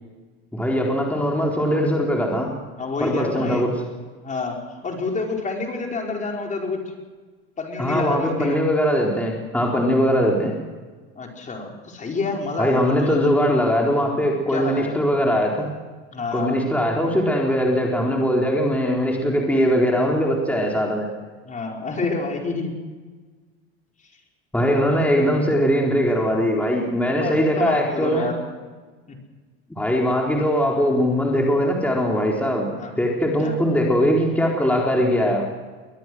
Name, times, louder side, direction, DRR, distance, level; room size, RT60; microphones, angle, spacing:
voice 1, 0.5-2.5 3.0-3.7 7.8-10.5 12.6-15.7 16.3-21.1 24.5-28.3 29.8-35.4, equal, 5° left, -1 dB, 4.0 m, -21 dB
voice 2, 2.8-3.7 4.2-4.6 4.8-6.8 7.6-8.6 11.1-13.3 14.5-14.9 16.1-16.6 21.4-22.7 24.6-25.1 27.1-28.4 29.1-29.2 32.8-32.9 33.4-33.5, left 3 dB, 25° left, 1 dB, 4.6 m, -28 dB
23.0 x 19.5 x 6.3 m, 1.4 s
supercardioid pair, 105°, 29 cm